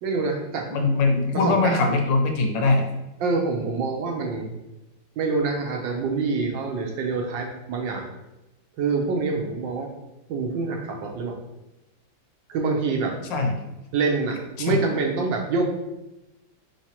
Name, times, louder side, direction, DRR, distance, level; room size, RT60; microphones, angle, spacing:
voice 1, 0.0-0.7 1.5-2.0 3.2-4.5 5.2-8.1 8.8-9.9 10.3-11.4 12.5-13.2 13.9-15.6, right 4 dB, 75° right, 1 dB, 1.4 m, -26 dB
voice 2, 0.7-2.8 13.3-13.6 14.6-14.8, left 3 dB, 75° left, 3 dB, 1.4 m, -21 dB
4.7 x 3.9 x 2.8 m, 0.95 s
omnidirectional pair, 2.1 m